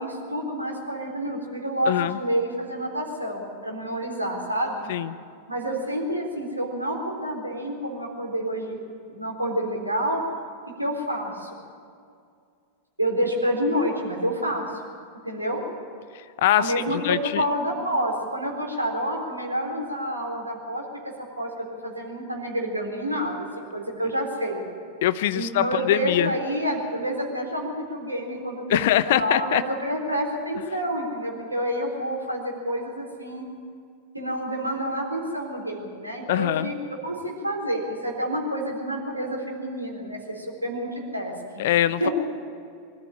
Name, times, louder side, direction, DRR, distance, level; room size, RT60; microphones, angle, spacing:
voice 1, 0.0-4.8 5.5-8.8 9.1-10.2 10.8-11.5 13.0-14.6 15.2-15.6 16.6-20.9 21.4-24.6 25.3-28.8 29.1-33.5 34.1-36.7 37.0-41.7 42.0-42.1, equal, 85° right, 0 dB, 3.8 m, -28 dB
voice 2, 1.9-2.2 4.9-5.2 16.4-17.4 25.0-26.3 28.7-29.6 36.3-36.7 41.6-42.1, left 13 dB, 55° left, 15 dB, 0.8 m, -23 dB
23.5 x 14.0 x 9.9 m, 2.3 s
figure-of-eight pair, 90°, 0 cm